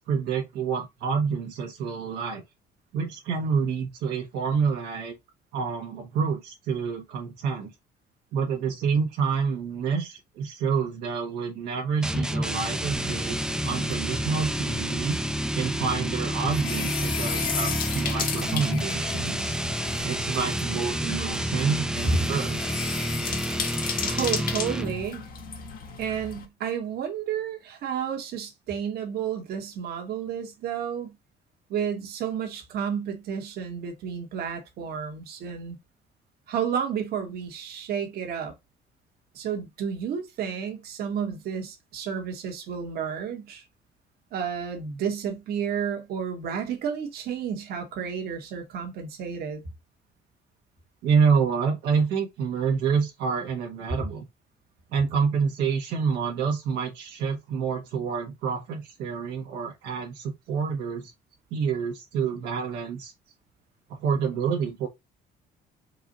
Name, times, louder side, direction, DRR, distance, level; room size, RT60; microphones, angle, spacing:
voice 1, 0.1-2.4 2.9-5.1 5.5-7.7 8.3-13.4 13.6-15.2 15.5-19.5 20.0-22.6 51.0-54.2 54.9-61.1 61.5-63.1 63.9-64.9, right 6 dB, 85° right, 1.4 m, -28 dB
sound 1, 12.0-25.1, right 1 dB, 5° right, 0.5 m, -29 dB
sound 2, 13.0-26.5, left 6 dB, 60° left, 1.4 m, -35 dB
voice 2, 24.0-25.3 26.0-31.1 31.7-35.8 36.5-38.5 39.3-43.6 44.3-49.6, right 8 dB, 70° right, 1.6 m, -31 dB
4.7 x 2.5 x 4.1 m
cardioid pair, 110°, 17 cm